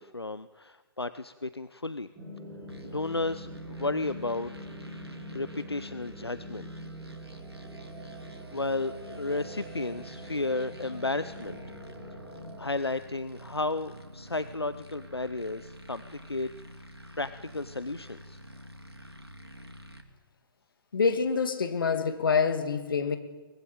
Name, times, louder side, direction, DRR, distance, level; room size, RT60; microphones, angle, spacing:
voice 1, 0.0-2.1 2.8-4.5 5.3-6.7 8.5-11.6 12.6-16.5 17.2-18.4, left 2 dB, 85° left, 0.8 m, -33 dB
sound 1, 2.2-12.5, left 1 dB, 15° right, 4.8 m, -44 dB
sound 2, 2.7-20.0, right 2 dB, 85° right, 2.8 m, -48 dB
voice 2, 20.9-23.2, left 5 dB, 60° left, 2.5 m, -26 dB
23.5 x 20.5 x 9.0 m
figure-of-eight pair, 125°, 13 cm